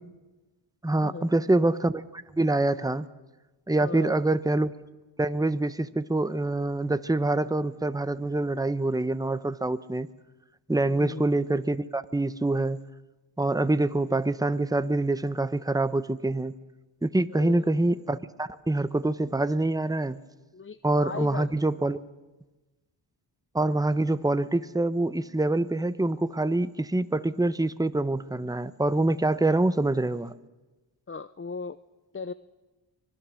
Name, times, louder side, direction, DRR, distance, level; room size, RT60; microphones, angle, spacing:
voice 1, 0.8-3.1 3.7-4.7 5.2-10.1 10.7-12.8 13.4-16.5 17.0-20.2 20.8-22.0 23.5-30.3, right 2 dB, 10° right, 13 dB, 0.9 m, -25 dB
voice 2, 3.8-4.2 10.9-11.3 17.3-17.7 20.5-21.5 31.1-31.8 32.1-32.3, left 5 dB, 30° left, 13 dB, 0.6 m, -37 dB
24.5 x 20.5 x 6.4 m, 1.1 s
cardioid pair, 50°, 46 cm